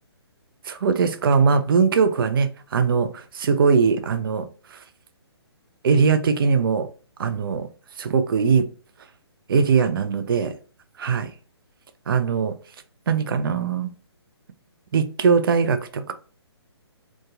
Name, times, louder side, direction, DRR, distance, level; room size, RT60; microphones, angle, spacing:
voice 1, 0.7-4.8 5.8-6.9 7.2-7.7 8.0-8.7 9.5-10.5 11.0-11.3 12.1-12.5 13.1-13.9 14.9-16.1, right 5 dB, 55° right, 10 dB, 0.4 m, -21 dB
2.8 x 2.2 x 2.6 m, 0.37 s
hypercardioid pair, 145°, 14 cm